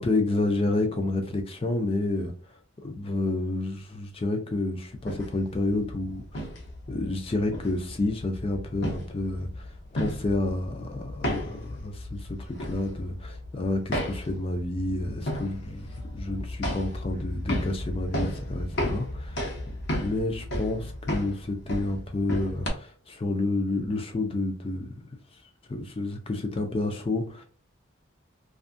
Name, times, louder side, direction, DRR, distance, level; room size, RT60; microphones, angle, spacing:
voice 1, 0.0-2.3 2.8-6.5 6.9-19.5 20.0-24.9 25.7-27.4, left 2 dB, 25° left, 0.4 m, -29 dB
sound 1, 4.9-22.7, left 1 dB, 55° left, 0.8 m, -34 dB
2.5 x 2.4 x 2.5 m
head